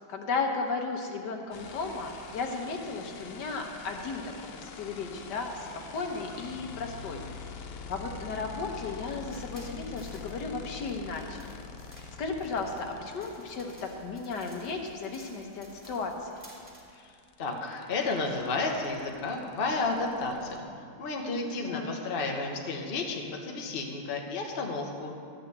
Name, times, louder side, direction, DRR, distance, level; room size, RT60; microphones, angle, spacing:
voice 1, 0.1-5.7 5.9-7.2 7.9-11.4 12.2-16.3 21.6-21.9, left 4 dB, 70° left, 3 dB, 1.6 m, -35 dB
sound 1, 1.5-13.8 15.9-16.0 16.2-20.6, left 5 dB, 85° left, 0.5 m, -45 dB
sound 2, 9.0-16.8, equal, 5° right, 2.7 m, -55 dB
voice 2, 16.9-20.7 21.0-25.1, left 3 dB, 35° left, 1 dB, 1.1 m, -32 dB
12.5 x 6.0 x 7.9 m, 2.4 s
omnidirectional pair, 2.0 m